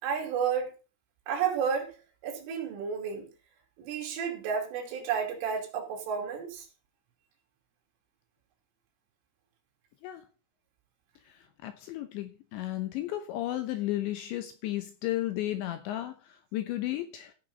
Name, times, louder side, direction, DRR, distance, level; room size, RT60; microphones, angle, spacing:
voice 1, 0.0-0.7 1.3-1.9 2.2-3.3 3.8-6.7, right 7 dB, 70° right, 5.1 m, -31 dB
voice 2, 11.6-17.3, left 14 dB, 75° left, 2.8 m, -34 dB
15.5 x 6.9 x 4.0 m
omnidirectional pair, 6.0 m